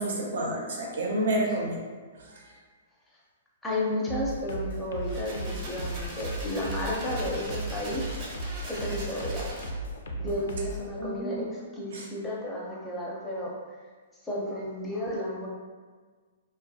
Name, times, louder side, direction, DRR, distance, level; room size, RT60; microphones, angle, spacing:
voice 1, 0.0-1.8 2.2-2.4 11.0-11.4 11.9-12.1, right 1 dB, 75° right, -1 dB, 0.6 m, -29 dB
voice 2, 3.6-8.1 8.7-9.6 10.2-13.5 14.2-15.5, left 1 dB, 10° left, -5 dB, 0.5 m, -32 dB
sound 1, 4.1-10.9, right 1 dB, 75° left, 0.4 m, -36 dB
sound 2, 4.9-9.9, right 1 dB, 35° right, 0.6 m, -41 dB
2.3 x 2.0 x 2.6 m, 1.5 s
hypercardioid pair, 150°, 0 cm